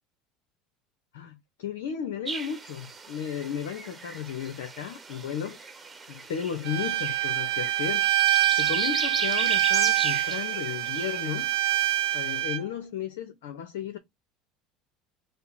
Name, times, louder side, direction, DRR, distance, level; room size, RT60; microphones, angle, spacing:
voice 1, 1.1-5.6 6.1-8.1 8.6-11.5 12.1-14.0, left 8 dB, 75° left, 0.8 m, -34 dB
sound 1, 2.2-12.4, right 4 dB, 20° right, 1.0 m, -37 dB
Bowed string instrument, 6.6-12.6, right 14 dB, 65° right, 0.6 m, -25 dB
4.9 x 2.2 x 4.2 m
hypercardioid pair, 80°, 0 cm